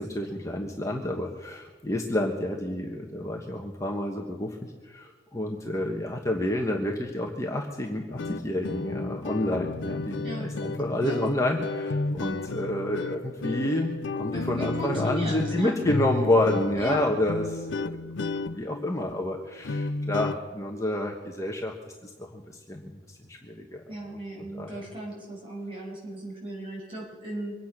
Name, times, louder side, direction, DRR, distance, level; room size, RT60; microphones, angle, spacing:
voice 1, 0.0-18.0 18.5-21.7 22.0-23.0 23.3-23.8 24.4-24.8, left 1 dB, 15° left, 0 dB, 1.3 m, -29 dB
sound 1, 8.1-20.4, left 3 dB, 80° left, 0.6 m, -33 dB
voice 2, 10.2-10.6 11.0-11.2 14.3-15.7 16.8-17.0 23.9-27.5, right 1 dB, 30° right, -4 dB, 6.7 m, -36 dB
24.0 x 9.3 x 6.0 m, 1.4 s
head